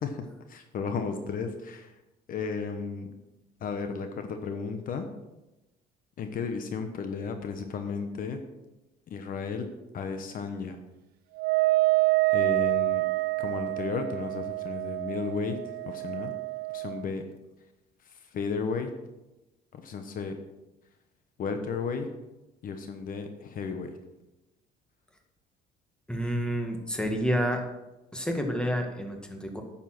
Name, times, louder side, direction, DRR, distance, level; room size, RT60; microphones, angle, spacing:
voice 1, 0.0-2.0 2.3-3.1 3.6-5.1 6.2-8.4 9.1-9.7 9.9-10.8 12.3-13.0 13.4-15.6 15.9-16.3 16.7-17.2 18.0-18.9 19.7-20.4 21.4-22.1 22.6-23.9, left 5 dB, 55° left, 7 dB, 1.0 m, -34 dB
Wind instrument woodwind instrument, 11.4-17.0, right 22 dB, 70° right, 0.5 m, -27 dB
voice 2, 26.1-27.6 28.1-29.6, equal, 5° left, 3 dB, 1.8 m, -29 dB
9.5 x 7.2 x 6.0 m, 1.0 s
cardioid pair, 110°, 17 cm